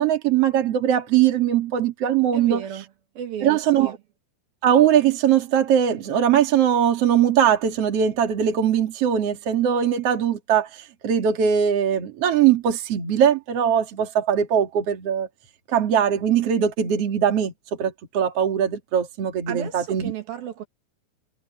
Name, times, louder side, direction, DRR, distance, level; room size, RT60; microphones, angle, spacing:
voice 1, 0.0-2.6 3.4-4.0 4.6-15.3 15.7-17.5 17.8-20.1, right 9 dB, 45° right, 3.1 m, -21 dB
voice 2, 2.3-2.9 3.2-4.0 19.5-20.7, right 9 dB, 85° right, 4.2 m, -33 dB
omnidirectional pair, 4.1 m